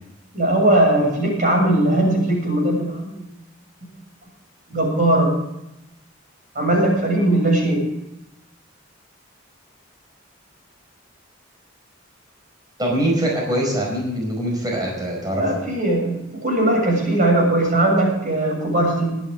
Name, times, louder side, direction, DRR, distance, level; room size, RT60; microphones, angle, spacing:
voice 1, 0.3-3.2 4.7-5.3 6.5-7.8 15.3-19.2, right 1 dB, 40° right, 0 dB, 7.4 m, -19 dB
voice 2, 12.8-15.7, right 1 dB, 20° right, -1 dB, 4.9 m, -23 dB
23.0 x 11.0 x 3.6 m, 0.87 s
head